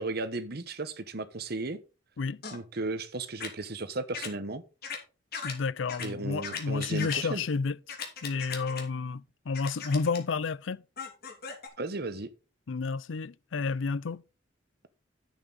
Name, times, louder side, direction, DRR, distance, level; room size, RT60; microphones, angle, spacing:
voice 1, 0.0-1.8 2.5-4.6 6.0-7.4 11.8-12.3, right 2 dB, 55° right, 1.2 m, -35 dB
sound 1, 2.4-2.6 3.4-3.5 4.1-4.3 4.8-5.0 5.3-5.5 5.9-6.1 6.4-7.2 7.9-8.8 9.5-10.2 11.0-11.7, left 6 dB, 55° left, 2.8 m, -37 dB
voice 2, 5.4-7.8 8.2-10.8 12.7-14.2, left 4 dB, 90° left, 0.5 m, -31 dB
10.5 x 8.4 x 4.0 m
head